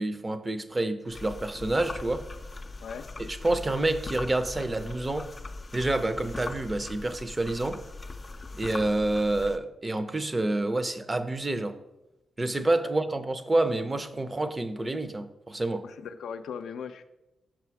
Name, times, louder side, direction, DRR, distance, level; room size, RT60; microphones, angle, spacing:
voice 1, 0.0-2.3 3.2-5.3 5.7-7.8 8.5-11.8 12.4-15.8, right 2 dB, 25° right, 0.5 m, -28 dB
sound 1, 1.1-9.6, left 3 dB, 30° left, 0.5 m, -40 dB
voice 2, 15.8-17.0, left 7 dB, 85° left, 0.4 m, -38 dB
6.0 x 5.5 x 4.7 m
cardioid pair, 80°, 0 cm